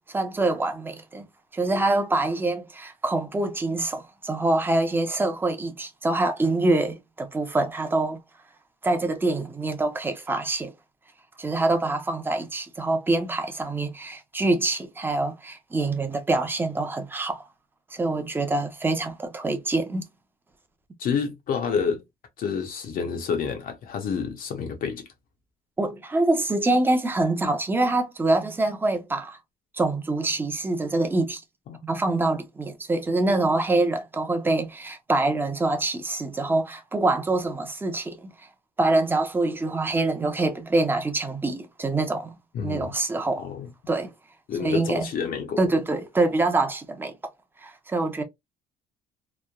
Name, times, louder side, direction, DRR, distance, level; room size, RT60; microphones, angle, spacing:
voice 1, 0.1-1.3 1.5-8.2 8.8-10.7 11.4-17.4 17.9-20.0 25.8-29.4 29.7-31.4 31.8-38.3 38.8-42.4 42.6-43.5 43.9-44.1 44.6-45.1 45.6-47.1 47.6-48.2, right 2 dB, 10° right, 0.6 m, -25 dB
voice 2, 21.0-22.0 22.4-25.1 31.7-31.8 42.5-42.9 43.4-43.7 44.5-45.6, left 6 dB, 55° left, 0.6 m, -29 dB
3.1 x 2.1 x 2.2 m
cardioid pair, 110°, 17 cm